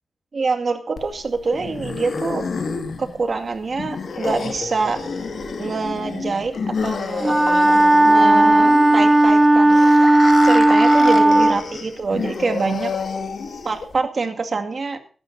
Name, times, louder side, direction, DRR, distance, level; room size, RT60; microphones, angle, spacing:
voice 1, 0.3-2.4 3.0-5.0 5.6-7.6 8.0-9.9 10.4-12.9 13.6-15.0, right 4 dB, 50° right, 5 dB, 2.2 m, -25 dB
sound 1, 1.0-14.0, left 4 dB, 70° left, 2.3 m, -29 dB
Wind instrument woodwind instrument, 7.2-11.6, right 1 dB, 20° right, 0.7 m, -14 dB
23.0 x 11.5 x 2.8 m, 0.41 s
wide cardioid pair, 110°, 0 cm